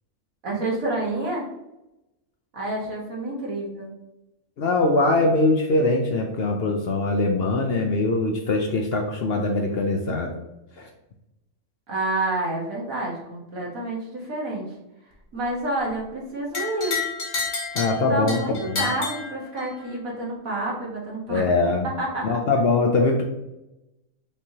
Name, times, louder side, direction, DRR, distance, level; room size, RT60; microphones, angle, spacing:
voice 1, 0.4-1.4 2.5-3.9 11.9-14.7 15.3-17.0 18.1-21.5 22.0-22.4, right 2 dB, 80° right, -3 dB, 1.7 m, -29 dB
voice 2, 4.6-10.3 10.8-10.9 17.7-18.9 21.3-21.9 22.2-23.2, left 2 dB, 60° left, 2 dB, 0.7 m, -22 dB
sound 1, 16.5-19.9, left 4 dB, 40° left, 1.1 m, -30 dB
5.3 x 3.1 x 2.7 m, 0.91 s
omnidirectional pair, 1.4 m